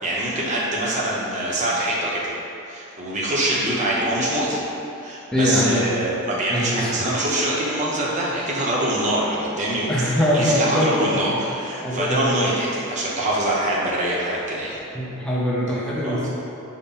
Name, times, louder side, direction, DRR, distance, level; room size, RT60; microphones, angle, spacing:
voice 1, 0.0-2.3 2.7-4.6 5.0-14.8 16.0-16.3, right 1 dB, 30° right, -5 dB, 0.7 m, -24 dB
voice 2, 5.3-5.9 6.5-7.1 9.9-11.2 11.8-12.4 14.9-16.3, equal, 5° left, -6 dB, 0.5 m, -22 dB
5.3 x 2.1 x 4.1 m, 2.9 s
head